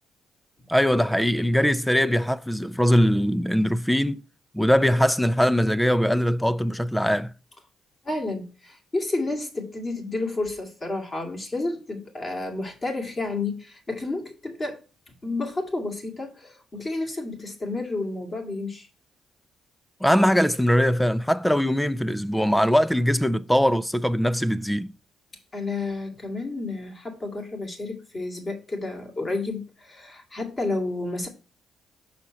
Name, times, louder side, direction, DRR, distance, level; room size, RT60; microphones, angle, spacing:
voice 1, 0.7-4.2 4.5-7.3 20.0-24.9, equal, 5° left, 0.4 m, -21 dB
voice 2, 8.0-14.8 15.2-18.9 25.5-31.3, left 2 dB, 30° left, 2.2 m, -31 dB
6.2 x 4.2 x 5.7 m
cardioid pair, 90°, 0 cm